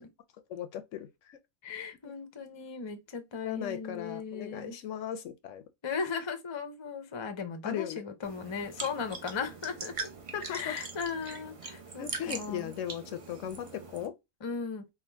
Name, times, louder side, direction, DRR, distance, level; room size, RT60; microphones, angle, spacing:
voice 1, 0.5-1.4 3.4-5.6 7.6-8.0 10.3-10.8 12.0-14.2, left 10 dB, 70° left, 0.8 m, -37 dB
voice 2, 1.6-4.8 5.8-10.1 10.5-12.7 14.4-14.8, left 5 dB, 35° left, 0.4 m, -37 dB
sound 1, 8.2-14.1, right 4 dB, 40° right, 0.5 m, -42 dB
3.5 x 2.3 x 4.4 m
omnidirectional pair, 1.4 m